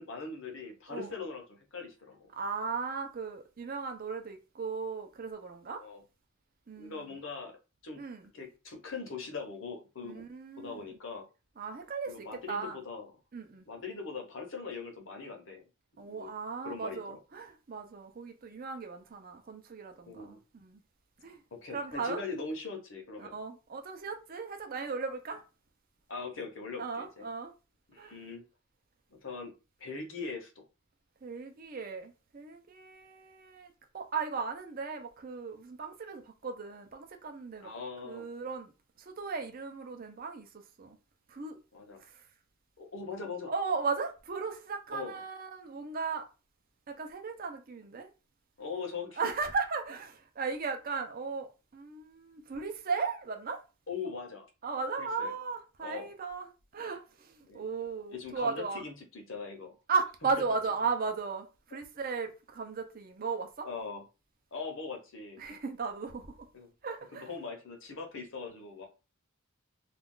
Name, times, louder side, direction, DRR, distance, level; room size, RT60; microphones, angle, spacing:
voice 1, 0.0-2.3 5.7-6.0 6.8-7.6 7.8-8.0 8.3-10.2 10.6-11.3 12.1-13.1 13.6-15.6 15.9-16.3 16.6-17.2 20.1-20.4 21.5-23.4 26.1-27.3 27.9-28.4 29.1-29.5 29.8-30.6 37.6-38.3 41.7-42.0 42.8-43.5 44.9-45.2 48.6-49.3 53.9-54.5 55.0-55.3 55.8-56.1 57.4-57.7 58.1-59.8 63.6-64.0 64.5-65.4 66.5-66.7 67.1-68.9, left 4 dB, 65° left, 0.8 m, -41 dB
voice 2, 2.4-5.8 6.7-7.1 8.0-8.3 10.0-11.0 11.6-12.8 13.3-13.7 16.0-20.8 21.2-21.4 21.7-22.2 23.2-25.4 26.8-27.5 28.0-28.1 31.2-37.7 38.0-38.7 39.0-40.5 40.8-41.0 41.3-41.6 42.1-42.2 43.5-46.2 46.9-48.1 49.2-53.6 54.6-58.8 59.9-63.7 65.4-66.3 66.8-67.3, right 4 dB, 40° right, 0.5 m, -36 dB
2.4 x 2.3 x 3.6 m
head